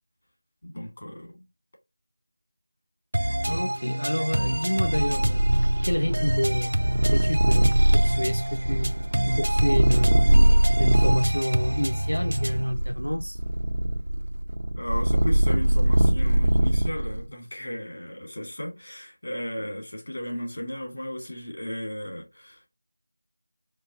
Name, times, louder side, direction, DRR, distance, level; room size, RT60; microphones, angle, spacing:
voice 1, 0.6-1.4 14.8-22.7, left 1 dB, 40° left, 1.9 m, -35 dB
sound 1, 3.1-12.7, right 1 dB, 75° right, 0.4 m, -27 dB
voice 2, 3.5-5.5 5.8-6.8 7.1-10.3 10.8-13.4, equal, 90° left, 0.5 m, -28 dB
Purr, 4.8-11.3 12.0-17.2, right 1 dB, 50° right, 0.8 m, -22 dB
4.6 x 2.5 x 3.6 m
figure-of-eight pair, 170°, 0 cm